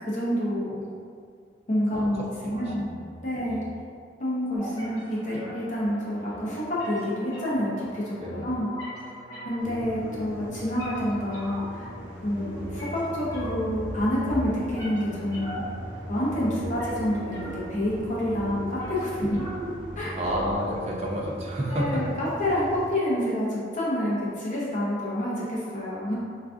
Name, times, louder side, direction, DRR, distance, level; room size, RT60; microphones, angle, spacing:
voice 1, 0.1-0.9 1.7-2.9 3.2-3.6 4.2-8.7 9.4-11.9 12.2-15.6 16.1-19.4 20.0-20.2 21.7-26.1, left 1 dB, 45° left, -7 dB, 0.7 m, -28 dB
voice 2, 2.4-3.1 3.4-3.6 8.2-8.5 16.4-16.7 19.3-19.4 20.2-22.0, equal, 35° right, -3 dB, 0.5 m, -31 dB
sound 1, 4.6-20.6, equal, 20° left, 1.1 m, -41 dB
sound 2, 9.6-22.9, right 1 dB, 85° right, 0.6 m, -39 dB
4.6 x 2.4 x 2.4 m, 2.2 s
head